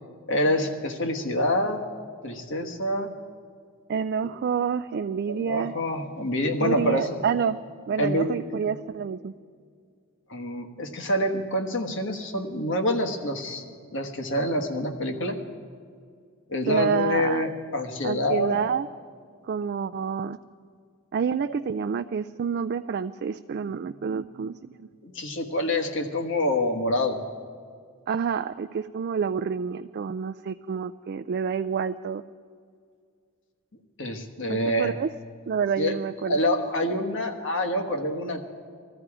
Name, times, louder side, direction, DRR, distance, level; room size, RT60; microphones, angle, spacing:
voice 1, 0.3-1.8 2.2-3.1 5.4-7.1 8.0-8.4 10.3-13.6 13.9-15.4 16.5-18.6 21.4-21.5 25.0-27.2 34.0-35.0 35.8-36.0 36.3-38.4, left 1 dB, 60° left, 4 dB, 1.4 m, -26 dB
voice 2, 3.9-5.7 6.6-7.6 7.9-9.3 16.7-17.5 18.0-18.9 19.5-20.4 21.1-24.9 28.1-32.2 34.5-35.1 35.5-36.4, right 6 dB, 50° right, 10 dB, 0.3 m, -28 dB
21.0 x 14.0 x 4.9 m, 2.2 s
head